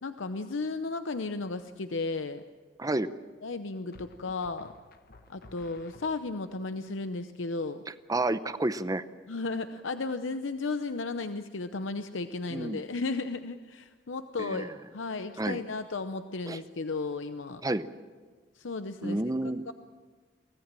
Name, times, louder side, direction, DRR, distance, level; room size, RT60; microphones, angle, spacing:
voice 1, 0.0-2.4 3.4-4.7 5.3-7.8 9.3-17.6 18.5-19.2 19.7-19.8, left 3 dB, 90° left, 9 dB, 0.7 m, -34 dB
sound 1, 1.3-1.7 3.9-6.6, left 2 dB, 55° left, 1.1 m, -55 dB
voice 2, 8.1-9.0 12.5-12.8 14.4-14.7 15.4-15.6 16.4-16.6 17.6-17.9 19.0-19.6, right 2 dB, 20° right, 12 dB, 0.7 m, -30 dB
24.0 x 17.0 x 7.6 m, 1.5 s
head